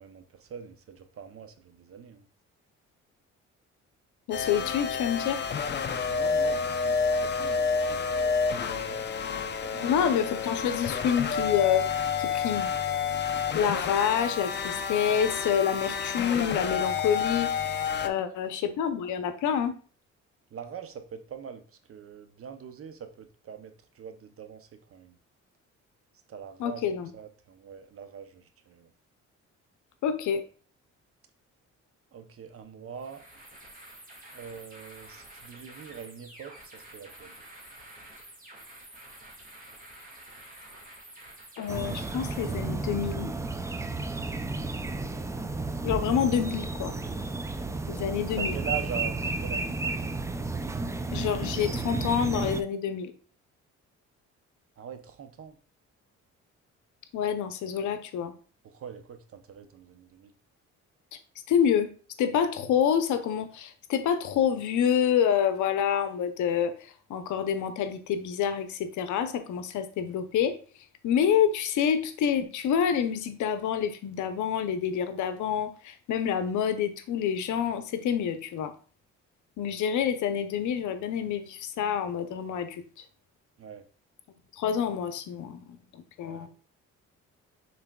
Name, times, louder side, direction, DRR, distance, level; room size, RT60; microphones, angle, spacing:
voice 1, 0.0-2.2 6.1-9.3 9.6-10.0 17.9-18.2 20.5-21.6 21.9-25.2 26.3-26.8 27.1-28.9 32.1-33.2 34.3-37.4 48.2-49.8 54.8-55.6 58.6-60.3 83.6-83.8 86.2-86.5, right 7 dB, 50° right, 9 dB, 0.7 m, -43 dB
voice 2, 4.3-5.4 9.8-11.9 12.2-12.7 13.5-19.7 26.6-27.1 30.0-30.4 41.6-43.3 45.8-47.0 47.9-48.6 51.1-53.1 57.1-58.3 61.5-61.9 62.2-70.6 71.0-78.7 79.6-83.0 84.5-86.5, left 8 dB, 75° left, 10 dB, 0.7 m, -27 dB
sound 1, 4.3-18.1, left 5 dB, 35° left, 0.5 m, -29 dB
sound 2, 32.9-42.9, right 1 dB, 25° right, 1.8 m, -49 dB
sound 3, 41.7-52.6, right 3 dB, 10° right, 0.3 m, -32 dB
5.9 x 3.9 x 2.3 m, 0.40 s
cardioid pair, 90°, 30 cm